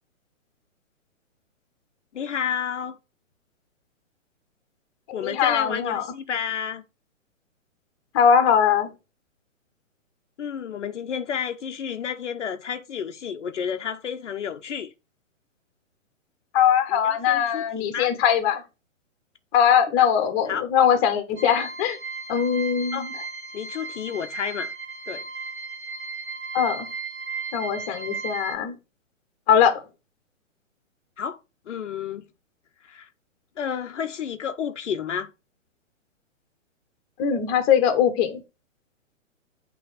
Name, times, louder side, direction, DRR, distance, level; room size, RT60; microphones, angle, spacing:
voice 1, 2.1-3.0 5.1-6.8 10.4-14.9 16.9-18.1 20.0-20.1 20.5-20.6 22.9-23.1 23.5-24.7 25.1-25.2 31.2-31.4 31.7-32.2 32.8-33.1 33.6-35.3, left 8 dB, 60° left, 0.8 m, -31 dB
voice 2, 5.1-6.0 8.1-8.9 16.5-18.6 19.5-22.0 22.3-23.1 26.5-26.9 27.5-28.7 29.5-29.8 37.2-38.4, left 8 dB, 25° left, 1.2 m, -21 dB
sound 1, 21.4-28.5, right 4 dB, 50° right, 1.9 m, -35 dB
8.6 x 3.2 x 4.6 m
figure-of-eight pair, 130°, 39 cm